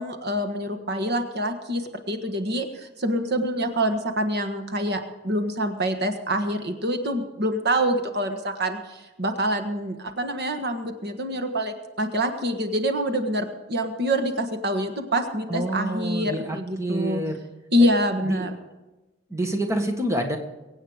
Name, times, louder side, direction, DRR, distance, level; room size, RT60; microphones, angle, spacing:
voice 1, 0.0-17.2 17.7-18.6, equal, 55° right, 7 dB, 1.5 m, -26 dB
voice 2, 15.5-17.4 18.2-18.5 19.3-20.4, right 1 dB, 15° right, 3 dB, 1.6 m, -27 dB
23.5 x 8.9 x 5.0 m, 1.1 s
head